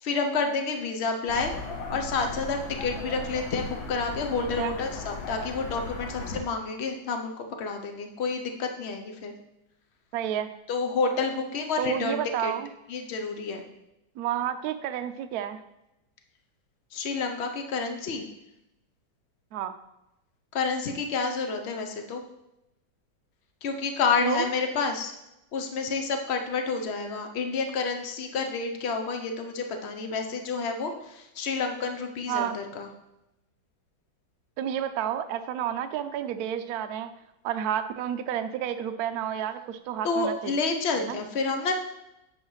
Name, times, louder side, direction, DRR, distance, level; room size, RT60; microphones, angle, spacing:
voice 1, 0.0-1.5 1.9-9.3 10.7-12.5 12.9-13.6 16.9-18.2 20.5-22.2 23.6-25.1 25.5-32.9 40.0-41.7, left 4 dB, 65° left, 4 dB, 0.6 m, -29 dB
sound 1, 1.3-6.4, left 3 dB, 80° left, 1.8 m, -37 dB
voice 2, 4.3-4.8 10.1-10.5 11.8-12.7 14.2-15.6 19.5-19.7 24.2-24.5 32.3-32.6 34.6-37.1 37.4-40.5 41.0-41.2, right 10 dB, 80° right, 8 dB, 0.8 m, -30 dB
9.6 x 5.6 x 3.2 m, 0.89 s
omnidirectional pair, 2.1 m